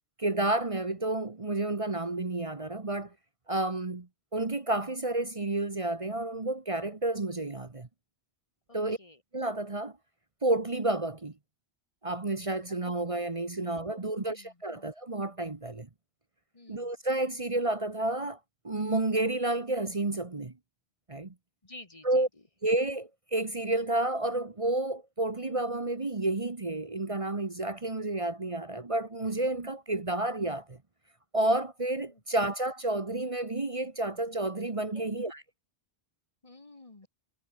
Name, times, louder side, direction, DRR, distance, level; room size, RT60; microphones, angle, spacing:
voice 1, 0.2-3.1 3.5-4.1 4.3-7.9 8.7-9.0 9.3-9.9 10.4-11.3 12.0-15.9 16.7-18.4 18.6-20.5 21.1-21.3 22.0-22.3 22.6-30.8 31.3-35.4, right 2 dB, 30° right, 1.3 m, -30 dB
voice 2, 8.7-9.2 13.6-14.8 16.5-16.9 21.6-22.2 34.9-35.2 36.4-37.1, left 2 dB, 30° left, 1.5 m, -52 dB
omnidirectional pair, 1.1 m